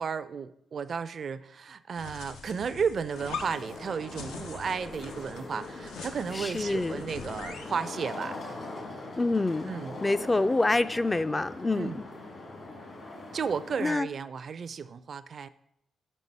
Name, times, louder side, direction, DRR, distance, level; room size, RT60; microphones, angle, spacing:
voice 1, 0.0-8.4 9.7-9.9 11.8-12.0 13.3-15.5, right 6 dB, 60° right, 15 dB, 0.4 m, -33 dB
sound 1, 2.0-7.8, left 5 dB, 85° left, 0.7 m, -43 dB
sound 2, 3.1-13.9, left 2 dB, 60° left, 2.3 m, -42 dB
voice 2, 6.3-7.0 9.2-9.7 10.0-12.0 13.8-14.1, left 2 dB, 25° left, 12 dB, 0.4 m, -26 dB
5.9 x 5.4 x 5.5 m, 0.78 s
hypercardioid pair, 45°, 0 cm